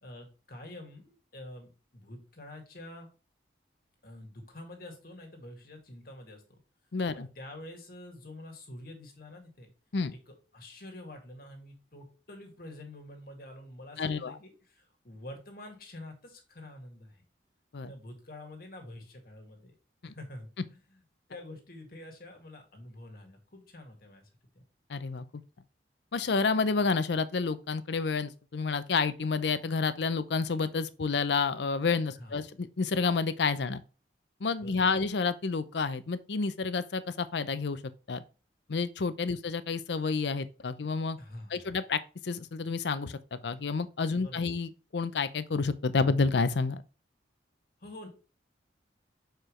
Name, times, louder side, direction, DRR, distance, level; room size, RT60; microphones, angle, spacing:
voice 1, 0.0-3.1 4.0-6.6 7.1-9.7 10.1-17.2 17.8-19.8 20.0-21.0 21.3-24.3 24.5-24.6 32.2-32.4 34.6-35.0 41.2-41.8 44.1-44.5 47.8-48.1, left 1 dB, 55° left, 1.8 m, -47 dB
voice 2, 6.9-7.3 9.9-10.1 14.0-14.4 17.7-17.9 20.0-20.1 24.9-25.2 26.1-33.8 34.4-37.8 38.1-38.2 38.7-41.2 41.5-46.8, left 4 dB, 70° left, 0.6 m, -29 dB
6.8 x 4.6 x 3.1 m
head